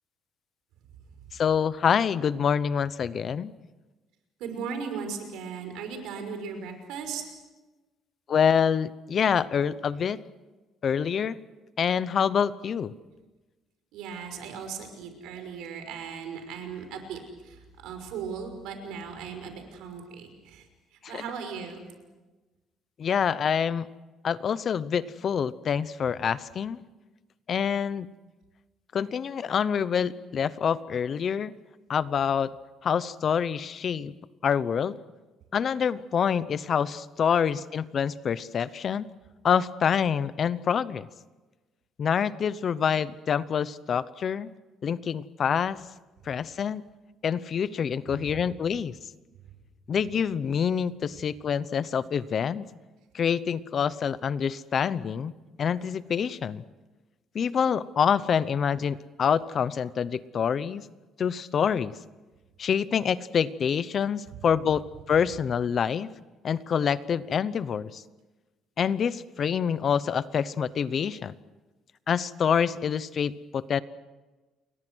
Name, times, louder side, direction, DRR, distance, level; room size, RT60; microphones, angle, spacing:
voice 1, 1.3-3.5 8.3-10.2 10.8-11.4 11.8-12.9 21.1-21.2 23.0-23.9 24.2-26.8 27.5-28.1 28.9-31.5 31.9-32.5 32.8-34.1 34.4-35.0 35.5-39.1 39.4-41.1 42.0-44.5 44.8-45.8 46.3-46.8 47.2-48.9 49.9-52.6 53.1-55.3 55.6-56.6 57.3-60.8 61.2-61.9 62.6-66.1 66.4-68.0 68.8-71.3 72.1-73.8, left 7 dB, 40° left, 16 dB, 0.8 m, -26 dB
voice 2, 4.4-7.2 13.9-21.8 48.1-48.3 49.4-49.5, right 6 dB, 85° right, 6 dB, 5.7 m, -38 dB
29.0 x 22.5 x 6.3 m, 1.2 s
cardioid pair, 145°, 0 cm